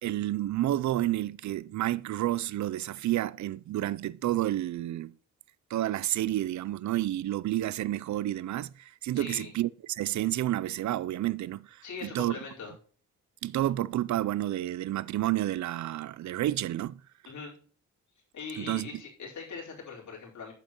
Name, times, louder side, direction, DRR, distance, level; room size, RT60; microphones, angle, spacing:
voice 1, 0.0-5.1 5.7-12.4 13.4-17.0 18.6-18.9, right 14 dB, 60° right, 0.5 m, -30 dB
voice 2, 9.1-9.5 11.8-12.7 17.3-17.5 18.3-20.5, left 5 dB, 65° left, 4.5 m, -41 dB
8.8 x 7.8 x 3.0 m
cardioid pair, 80°, 32 cm